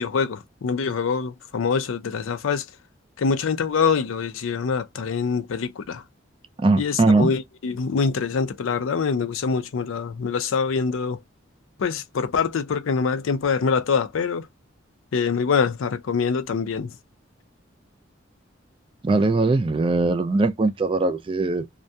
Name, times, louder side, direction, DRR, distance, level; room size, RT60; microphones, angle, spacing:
voice 1, 0.0-2.7 3.2-6.0 6.8-11.2 11.8-14.5 15.1-16.9, left 5 dB, 90° left, 0.4 m, -24 dB
voice 2, 6.6-7.3 19.0-21.7, right 3 dB, 25° right, 0.3 m, -20 dB
2.3 x 2.1 x 2.6 m
head